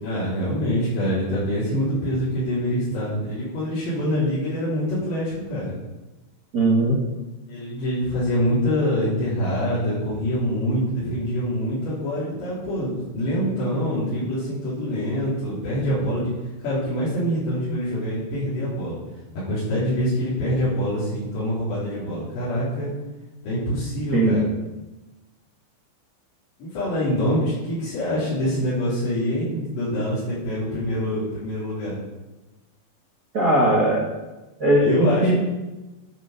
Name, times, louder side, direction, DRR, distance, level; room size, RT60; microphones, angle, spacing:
voice 1, 0.0-5.7 7.5-16.3 16.6-19.0 19.4-22.9 23.4-24.5 26.6-32.0 34.8-35.3, equal, 75° left, -12 dB, 6.4 m, -25 dB
voice 2, 6.5-7.0 24.1-24.4 33.3-34.1 34.6-35.3, right 1 dB, 55° right, -3 dB, 1.0 m, -19 dB
12.5 x 6.7 x 6.9 m, 1.1 s
omnidirectional pair, 5.0 m